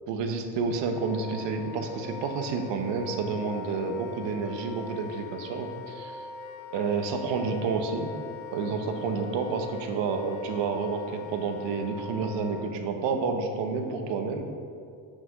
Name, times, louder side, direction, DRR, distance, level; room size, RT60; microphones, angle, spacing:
voice 1, 0.1-6.3 6.7-8.1 8.5-14.4, right 4 dB, 75° right, 5 dB, 1.0 m, -30 dB
Wind instrument woodwind instrument, 0.8-12.8, left 3 dB, 55° left, 0.7 m, -42 dB
6.1 x 5.1 x 6.4 m, 2.4 s
cardioid pair, 135°, 44 cm